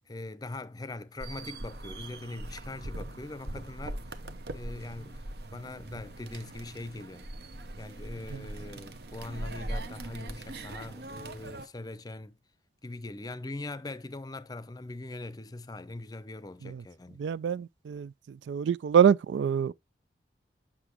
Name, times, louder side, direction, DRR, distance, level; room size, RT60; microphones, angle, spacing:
voice 1, 0.1-4.0 4.5-5.2 5.5-7.3 7.8-12.4 12.8-17.2, left 2 dB, 20° left, 0.5 m, -41 dB
sound 1, 1.2-11.7, right 1 dB, 65° right, 0.9 m, -41 dB
voice 2, 17.2-18.1 18.5-19.7, right 8 dB, 85° right, 0.3 m, -25 dB
7.9 x 6.0 x 2.9 m
head